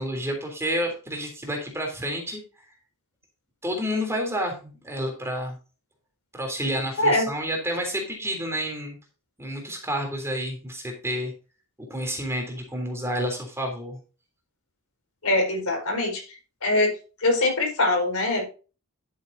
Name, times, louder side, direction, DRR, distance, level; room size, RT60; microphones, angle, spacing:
voice 1, 0.0-2.4 3.6-5.6 6.3-9.0 9.4-11.3 11.9-14.0, equal, 10° right, 2 dB, 3.4 m, -29 dB
voice 2, 15.2-16.2 16.6-16.9 17.2-18.5, left 2 dB, 75° left, 1 dB, 5.1 m, -22 dB
11.5 x 7.7 x 2.8 m, 0.35 s
head